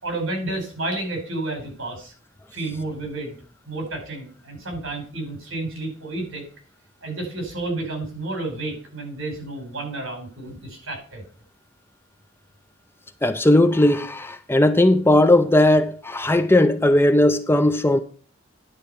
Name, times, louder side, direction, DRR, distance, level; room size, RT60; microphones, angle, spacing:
voice 1, 0.0-2.1 2.5-3.3 3.6-6.4 7.0-11.2, right 2 dB, 75° right, 5.0 m, -31 dB
voice 2, 13.2-18.0, left 1 dB, 10° left, 0.5 m, -17 dB
10.5 x 4.3 x 6.8 m
head